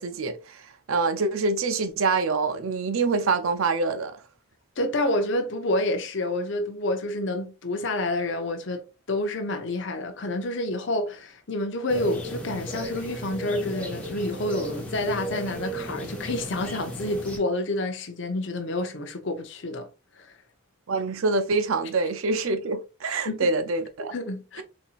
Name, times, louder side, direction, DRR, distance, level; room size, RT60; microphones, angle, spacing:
voice 1, 0.0-4.2 20.9-24.1, right 3 dB, 80° right, 0.5 m, -25 dB
voice 2, 4.8-8.8 9.1-19.9 20.2-20.3 23.3-23.5 24.1-24.6, left 1 dB, 60° left, 0.7 m, -28 dB
sound 1, 11.9-17.4, equal, 5° left, 0.7 m, -35 dB
4.2 x 2.8 x 2.4 m
head